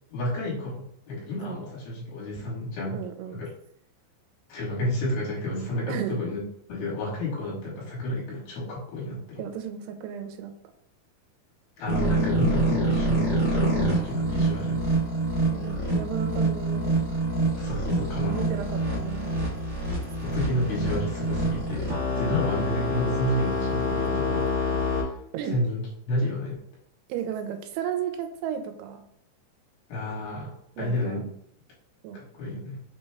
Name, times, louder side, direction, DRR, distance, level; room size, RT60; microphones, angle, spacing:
voice 1, 0.1-3.0 3.3-3.5 4.5-6.4 6.7-9.4 11.8-14.8 17.5-18.4 20.2-25.2 25.5-26.6 29.9-31.3 32.1-32.8, left 1 dB, 70° left, -5 dB, 3.0 m, -31 dB
voice 2, 2.9-3.4 5.9-6.2 9.4-10.5 15.4-17.1 18.3-19.6 22.2-22.4 25.3-25.6 27.1-29.0 30.8-31.2 32.0-32.2, right 8 dB, 85° right, 7 dB, 2.6 m, -34 dB
sound 1, 11.9-25.0, right 1 dB, 55° right, 1.1 m, -26 dB
6.1 x 2.2 x 3.3 m, 0.70 s
omnidirectional pair, 4.6 m